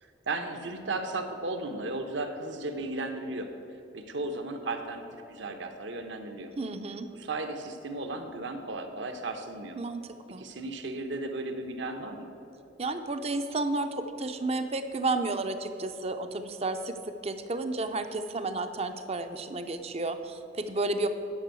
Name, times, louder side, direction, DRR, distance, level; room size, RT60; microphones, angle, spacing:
voice 1, 0.0-3.5 3.9-6.5 7.1-9.8 10.4-12.3, right 2 dB, 65° right, 6 dB, 0.9 m, -35 dB
voice 2, 6.6-7.1 9.8-10.5 12.8-21.1, right 2 dB, 30° right, 8 dB, 0.6 m, -32 dB
9.8 x 5.5 x 7.6 m, 2.9 s
head